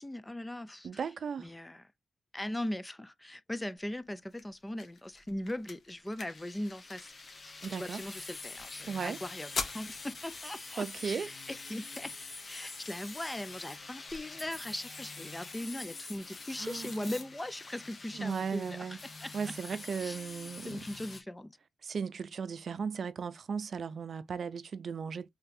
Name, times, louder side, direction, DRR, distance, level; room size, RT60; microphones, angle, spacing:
voice 1, 0.0-1.0 1.4-1.9 2.3-7.1 7.4-12.1 12.5-19.3 20.0-20.2 20.6-21.5, left 1 dB, 10° left, 0.4 m, -39 dB
voice 2, 0.8-1.5 7.6-8.0 8.9-9.2 10.8-11.3 16.6-17.1 18.1-19.0 19.3-20.8 21.8-25.3, right 6 dB, 50° right, 0.5 m, -36 dB
sound 1, 3.8-15.8, left 4 dB, 55° left, 1.3 m, -47 dB
sound 2, 6.3-21.2, left 3 dB, 30° left, 0.8 m, -46 dB
3.7 x 3.4 x 2.7 m
wide cardioid pair, 135°, 0 cm